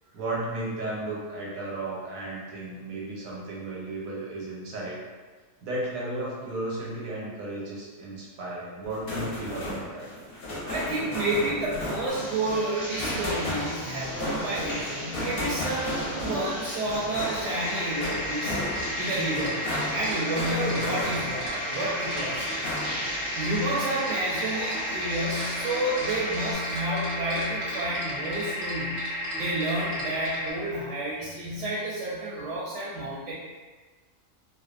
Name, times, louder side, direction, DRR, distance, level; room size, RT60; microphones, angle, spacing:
voice 1, 0.1-5.0 5.6-10.1, right 2 dB, 90° right, -5 dB, 1.1 m, -34 dB
sound 1, 8.8-21.6 22.0-23.2, left 1 dB, 55° left, 0.7 m, -34 dB
voice 2, 10.6-22.5 23.3-29.1 29.3-33.3, right 1 dB, 70° right, -7 dB, 0.8 m, -30 dB
sound 2, 12.1-26.5, equal, 25° left, 0.7 m, -38 dB
sound 3, 17.4-30.5, equal, 45° right, 0.3 m, -33 dB
2.5 x 2.3 x 2.4 m, 1.4 s
omnidirectional pair, 1.4 m